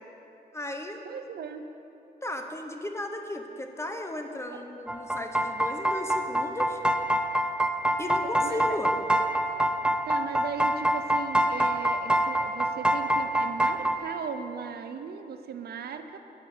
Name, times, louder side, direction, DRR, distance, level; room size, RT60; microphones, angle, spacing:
voice 1, 0.5-1.0 2.2-6.8 8.0-8.9, left 1 dB, 15° left, 4 dB, 0.9 m, -35 dB
voice 2, 1.0-1.6 4.5-4.6 8.2-8.8 10.0-16.2, right 6 dB, 70° right, 8 dB, 0.7 m, -38 dB
sound 1, 4.9-14.0, equal, 5° right, 0.6 m, -25 dB
9.6 x 8.8 x 6.6 m, 2.9 s
cardioid pair, 100°, 17 cm